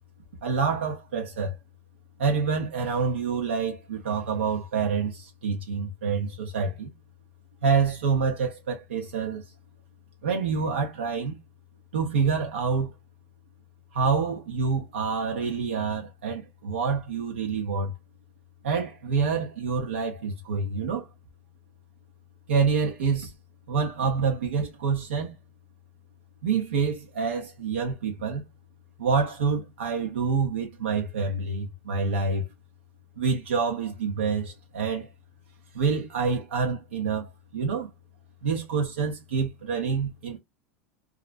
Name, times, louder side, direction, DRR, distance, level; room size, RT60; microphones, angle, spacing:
voice 1, 0.4-1.5 2.2-6.9 7.6-9.4 10.2-11.4 11.9-12.9 13.9-17.9 18.6-21.1 22.5-23.3 23.7-25.4 26.4-28.4 29.0-32.5 33.2-35.1 35.7-37.9 38.4-40.4, right 5 dB, 90° right, 0.6 m, -27 dB
2.4 x 2.1 x 2.4 m
hypercardioid pair, 100°, 6 cm